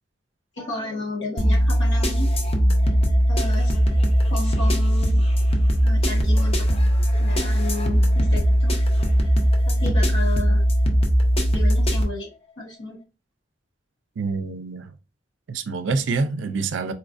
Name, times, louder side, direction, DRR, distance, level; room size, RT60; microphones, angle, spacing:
voice 1, 0.6-2.3 3.3-3.8 4.3-5.1 5.8-6.7 7.2-8.7 9.7-10.6 11.5-12.3 12.6-13.0, left 2 dB, 85° left, 1.3 m, -32 dB
sound 1, 1.4-12.0, equal, 35° left, 0.6 m, -19 dB
voice 2, 14.2-14.9 15.5-16.9, right 4 dB, 85° right, 0.4 m, -26 dB
4.3 x 2.4 x 2.5 m
head